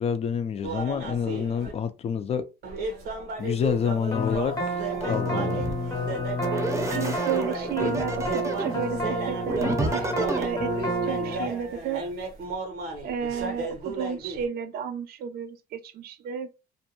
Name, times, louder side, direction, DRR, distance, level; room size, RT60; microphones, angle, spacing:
voice 1, 0.0-2.5 3.4-5.8, left 7 dB, 40° left, 0.4 m, -28 dB
sound 1, 0.6-1.7 2.6-14.5, right 3 dB, 80° right, 1.0 m, -35 dB
sound 2, 4.1-11.5, equal, 20° left, 0.8 m, -30 dB
sound 3, 4.9-5.8 6.4-8.8 9.4-10.5, right 2 dB, 15° right, 0.6 m, -30 dB
voice 2, 6.9-9.7 9.9-10.7 11.0-12.1 13.0-16.5, right 7 dB, 65° right, 0.5 m, -32 dB
2.5 x 2.2 x 2.8 m
cardioid pair, 110°, 17 cm